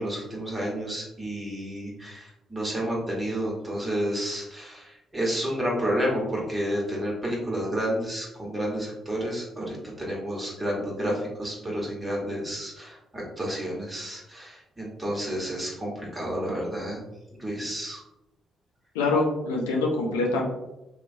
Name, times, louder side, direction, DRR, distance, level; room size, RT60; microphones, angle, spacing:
voice 1, 0.0-17.0 17.3-18.0, equal, 25° right, -3 dB, 1.4 m, -30 dB
voice 2, 18.9-20.4, left 3 dB, 90° left, 0 dB, 0.4 m, -24 dB
2.9 x 2.4 x 2.6 m, 0.93 s
hypercardioid pair, 45°, 0 cm